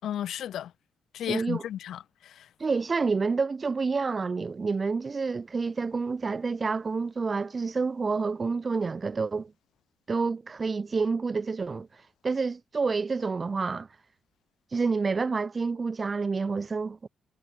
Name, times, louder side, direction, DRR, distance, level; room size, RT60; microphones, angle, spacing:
voice 1, 0.0-0.7 1.1-2.5, left 10 dB, 60° left, 6.1 m, -34 dB
voice 2, 1.3-1.6 2.6-9.5 10.1-13.9 14.7-17.1, right 4 dB, 25° right, 2.1 m, -28 dB
cardioid pair, 160°, 0 cm